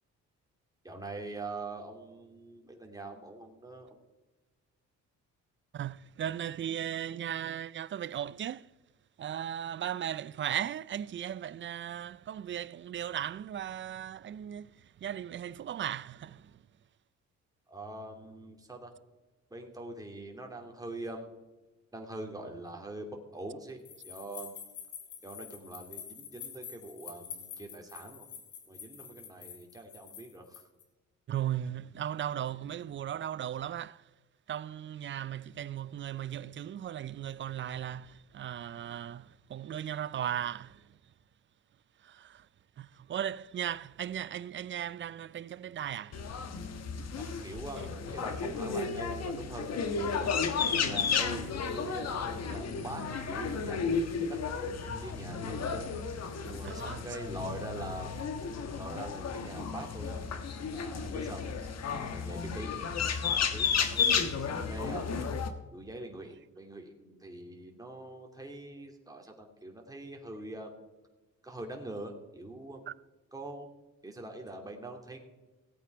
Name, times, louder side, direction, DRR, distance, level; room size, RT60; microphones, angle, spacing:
voice 1, 0.8-4.0 17.7-18.9 19.5-21.3 21.9-23.8 24.0-24.6 25.2-28.3 28.7-30.6 47.2-55.9 56.4-58.1 58.7-60.2 60.7-61.4 62.1-62.7 63.2-65.1 65.7-70.7 71.4-72.8 73.3-73.7 74.0-75.2, right 2 dB, 10° right, 2.6 m, -43 dB
voice 2, 5.7-8.7 9.2-14.7 15.0-16.5 31.3-34.0 34.5-40.8 42.0-42.5 42.8-46.2 56.6-57.0 72.9-73.0, right 10 dB, 40° right, 0.4 m, -37 dB
sound 1, 23.9-30.8, left 8 dB, 75° left, 2.3 m, -47 dB
sound 2, 46.1-65.5, left 6 dB, 60° left, 1.3 m, -33 dB
17.0 x 8.5 x 4.6 m
cardioid pair, 90°, 30 cm